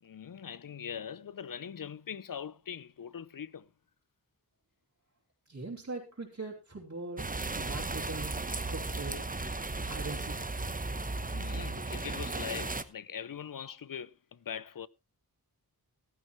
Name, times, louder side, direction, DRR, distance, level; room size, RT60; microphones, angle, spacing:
voice 1, 0.0-3.7 11.3-14.9, left 8 dB, 60° left, 0.6 m, -42 dB
voice 2, 5.5-8.3 8.7-9.2 9.8-10.6, right 3 dB, 50° right, 3.0 m, -41 dB
sound 1, 7.2-12.8, right 3 dB, 20° right, 0.9 m, -35 dB
15.0 x 12.5 x 3.1 m
wide cardioid pair, 70°, 38 cm